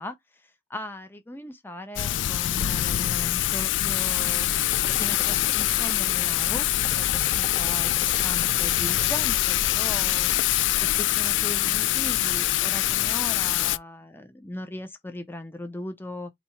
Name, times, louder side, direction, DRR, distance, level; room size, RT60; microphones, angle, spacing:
voice 1, 0.0-4.5 5.0-10.3 10.8-16.3, left 1 dB, 10° left, 0.5 m, -38 dB
Thunder / Rain, 2.0-13.8, left 14 dB, 85° left, 0.3 m, -24 dB
sound 1, 4.7-10.9, left 2 dB, 50° left, 1.3 m, -41 dB
4.1 x 2.8 x 4.3 m
head